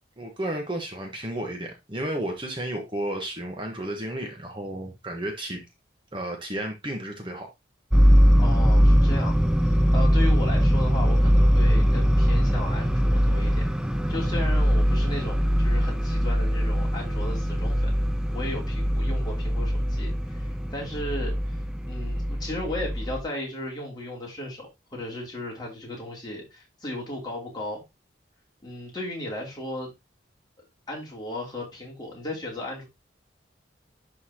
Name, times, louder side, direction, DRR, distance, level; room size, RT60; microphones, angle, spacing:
voice 1, 0.2-5.6 6.1-7.5, right 1 dB, 25° right, 1.1 m, -32 dB
sound 1, 7.9-23.2, equal, 5° right, 0.4 m, -21 dB
voice 2, 8.4-9.3 9.6-13.7 14.1-17.9 18.3-21.5 21.8-27.8 28.6-29.9 30.9-32.8, left 1 dB, 20° left, 2.9 m, -35 dB
11.0 x 4.0 x 2.8 m
head